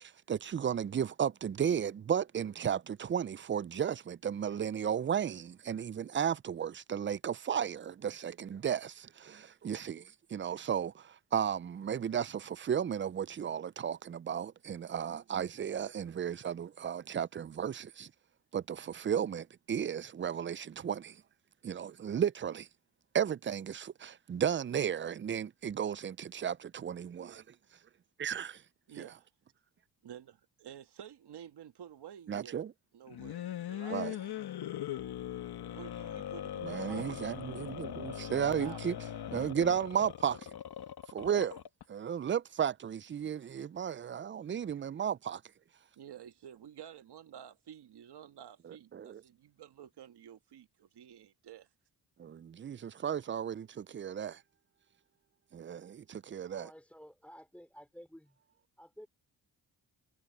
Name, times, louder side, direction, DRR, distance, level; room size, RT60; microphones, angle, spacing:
voice 1, 0.0-18.1 18.5-21.2 21.6-22.7 23.1-27.5 28.2-28.6 29.0-29.1 32.3-32.7 33.9-34.2 36.6-38.9 39.3-40.5 41.1-41.6 41.9-45.4 48.6-49.2 52.2-54.4 55.5-56.7, right 8 dB, 30° right, 0.5 m, -34 dB
voice 2, 28.9-29.3 30.0-32.6 32.9-34.4 35.6-37.3 38.0-38.8 46.0-51.7, right 9 dB, 70° right, 1.8 m, -51 dB
sound 1, 33.1-41.8, left 10 dB, 65° left, 1.3 m, -40 dB
voice 3, 56.5-58.4 58.8-59.1, equal, 5° left, 3.4 m, -53 dB
supercardioid pair, 60°, 41 cm